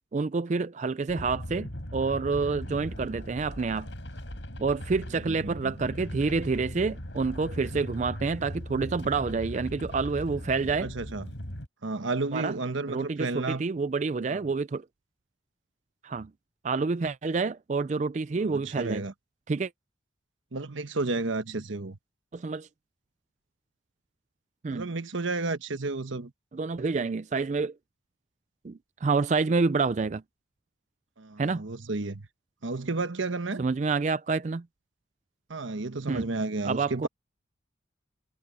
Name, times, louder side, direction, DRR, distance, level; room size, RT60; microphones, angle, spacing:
voice 1, 0.1-3.9 4.6-10.9 12.3-12.6 12.9-14.8 16.0-16.3 16.6-19.1 19.5-19.7 22.3-22.7 24.6-24.9 26.5-27.7 28.6-30.2 31.4-31.7 33.6-34.7 36.1-36.3 36.6-37.1, right 4 dB, 40° right, 0.4 m, -28 dB
sound 1, 1.1-11.7, equal, 70° left, 6.3 m, -39 dB
voice 2, 5.3-5.7 10.8-11.3 11.8-13.6 14.3-14.4 18.3-19.1 20.5-22.0 24.7-26.3 31.2-32.3 32.6-33.7 35.5-37.1, right 3 dB, 85° right, 1.2 m, -32 dB
head